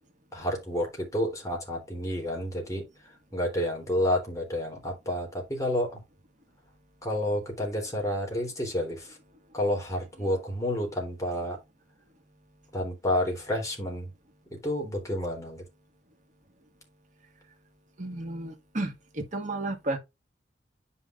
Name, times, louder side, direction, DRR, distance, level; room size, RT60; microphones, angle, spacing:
voice 1, 0.3-2.8 3.3-6.0 7.0-9.2 9.5-11.6 12.7-14.1 14.5-15.6, left 1 dB, 20° left, 3.4 m, -30 dB
voice 2, 18.0-20.0, right 2 dB, 45° right, 1.8 m, -33 dB
9.4 x 5.6 x 2.5 m
head